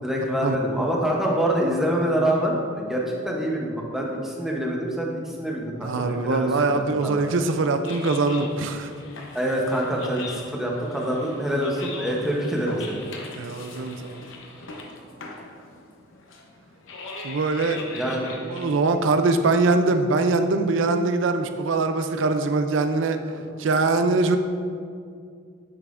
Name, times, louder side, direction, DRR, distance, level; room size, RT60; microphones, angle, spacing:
voice 1, 0.0-5.1 5.4-7.3 9.3-13.0 17.9-18.4 23.3-23.4, equal, ahead, -2 dB, 0.8 m, -26 dB
voice 2, 5.8-8.9 13.3-14.2 17.2-17.8 18.4-23.2 23.6-24.4, right 3 dB, 70° right, 8 dB, 0.4 m, -22 dB
sound 1, 7.6-19.8, left 3 dB, 75° left, 0.8 m, -41 dB
9.3 x 5.6 x 2.5 m, 2.3 s
head